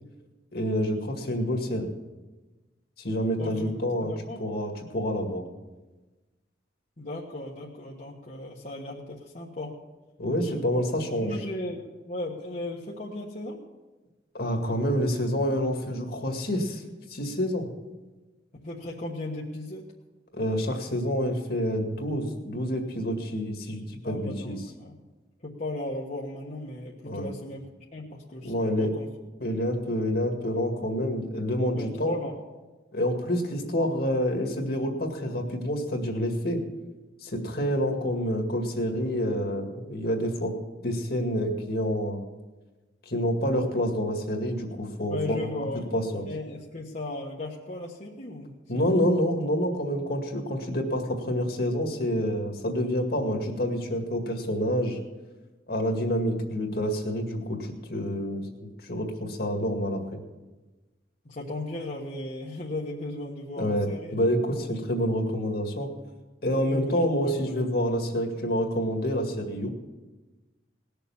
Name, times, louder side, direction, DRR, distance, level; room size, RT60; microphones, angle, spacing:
voice 1, 0.5-1.9 3.0-4.1 4.4-5.5 10.2-11.3 14.3-16.8 17.1-17.7 20.3-24.6 27.0-27.3 28.4-28.9 29.4-32.1 32.9-36.6 37.2-40.5 40.8-42.2 43.1-46.3 48.7-55.0 55.7-58.5 58.8-60.2 63.6-65.9 66.4-69.7, equal, 60° left, 3 dB, 2.1 m, -28 dB
voice 2, 3.4-3.7 4.0-4.4 7.0-9.8 10.4-10.7 11.2-11.8 12.1-13.6 18.6-19.9 24.0-25.0 25.4-29.1 31.8-32.3 45.1-45.9 46.3-49.1 61.2-64.2 64.7-64.8 66.7-67.6, left 2 dB, 40° left, -4 dB, 1.4 m, -36 dB
19.0 x 7.0 x 7.2 m, 1.2 s
head